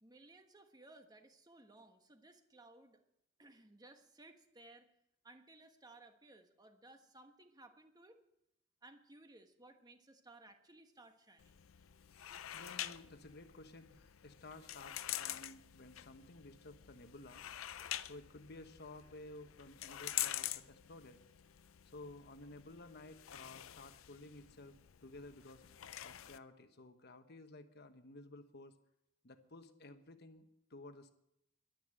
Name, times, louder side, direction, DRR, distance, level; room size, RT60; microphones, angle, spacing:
voice 1, 0.0-3.0 3.4-4.9 5.2-8.2 8.8-11.6, right 2 dB, 20° right, 6 dB, 1.2 m, -60 dB
sound 1, 11.4-26.4, left 13 dB, 80° left, 0.5 m, -46 dB
voice 2, 12.5-17.4 18.0-21.2 21.9-24.8 25.0-25.6 26.0-28.7 29.2-31.1, left 2 dB, 50° left, 8 dB, 1.1 m, -54 dB
11.5 x 9.9 x 8.9 m, 0.82 s
head